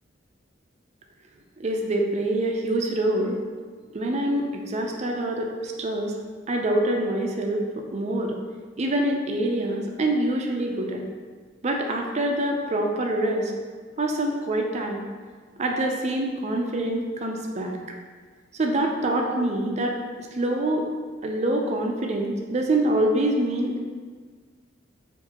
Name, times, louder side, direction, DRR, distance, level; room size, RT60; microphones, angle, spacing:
voice 1, 1.6-3.4 3.9-6.1 6.5-8.4 8.8-11.0 11.6-13.5 14.0-15.0 15.6-17.8 18.5-20.0 20.3-20.9 21.2-23.8, right 1 dB, 35° right, 2 dB, 0.5 m, -25 dB
4.7 x 2.6 x 2.9 m, 1.6 s
head